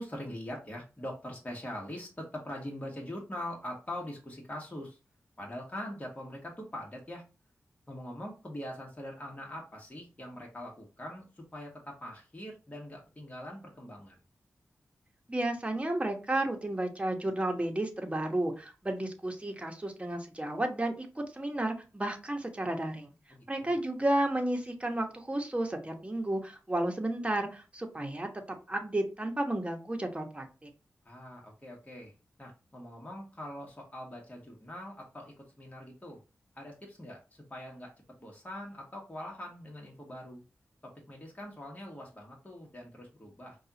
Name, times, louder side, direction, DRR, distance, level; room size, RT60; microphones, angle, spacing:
voice 1, 0.0-5.0 5.4-7.2 7.9-14.2 23.3-23.8 31.0-36.2 36.5-37.9 38.2-40.4 40.8-43.6, left 1 dB, 25° left, -1 dB, 1.4 m, -43 dB
voice 2, 15.3-23.1 23.5-28.3 28.7-30.7, right 1 dB, 20° right, 3 dB, 1.1 m, -32 dB
5.4 x 2.4 x 2.8 m, 0.31 s
cardioid pair, 40°, 5 cm